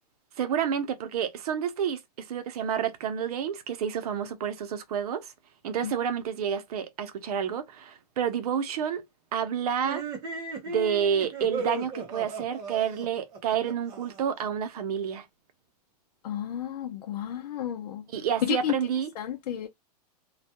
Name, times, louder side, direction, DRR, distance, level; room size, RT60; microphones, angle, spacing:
voice 1, 0.4-5.3 5.6-9.0 9.3-10.0 10.7-15.2 18.1-19.1, right 8 dB, 65° right, 0.7 m, -29 dB
sound 1, 9.8-14.4, right 2 dB, 20° right, 0.6 m, -36 dB
voice 2, 16.2-18.0 18.4-18.7 19.2-19.7, left 10 dB, 70° left, 0.5 m, -31 dB
2.3 x 2.2 x 2.7 m
supercardioid pair, 160°, 20 cm